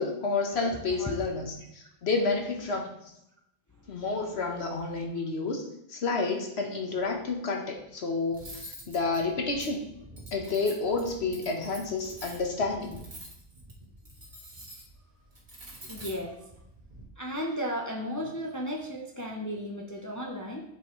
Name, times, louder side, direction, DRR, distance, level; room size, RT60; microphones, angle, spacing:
voice 1, 0.0-2.9 3.9-5.6 5.9-9.9 10.3-13.0, left 3 dB, 75° left, 2 dB, 1.4 m, -30 dB
voice 2, 0.5-1.2 15.8-16.5 17.2-20.6, equal, 20° left, 0 dB, 0.7 m, -35 dB
Cutlery silverware, 8.3-17.0, right 1 dB, 45° right, 1.7 m, -47 dB
8.2 x 6.8 x 3.2 m, 0.81 s
omnidirectional pair, 1.1 m